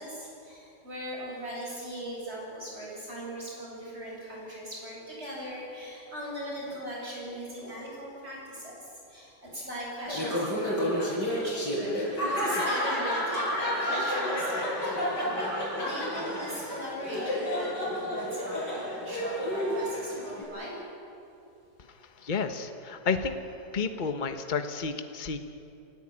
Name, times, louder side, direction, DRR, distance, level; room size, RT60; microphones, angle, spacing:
voice 1, 0.0-20.7 22.2-22.3, equal, 35° right, -4 dB, 8.1 m, -39 dB
Laughter, 10.1-20.4, equal, 75° left, 7.3 m, -30 dB
voice 2, 22.2-23.4 23.7-25.4, left 5 dB, 30° left, 7 dB, 1.2 m, -31 dB
29.0 x 14.0 x 9.0 m, 2.8 s
omnidirectional pair, 1.8 m